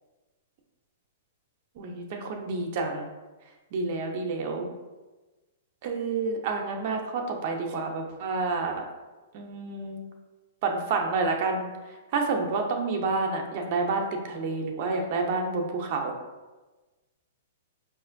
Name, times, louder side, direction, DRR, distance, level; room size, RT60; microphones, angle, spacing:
voice 1, 1.8-3.1 3.7-4.7 5.8-8.8 9.3-10.0 10.6-11.7 12.1-16.1, right 3 dB, 50° right, 2 dB, 0.5 m, -29 dB
4.8 x 2.5 x 2.5 m, 1.2 s
hypercardioid pair, 130°, 0 cm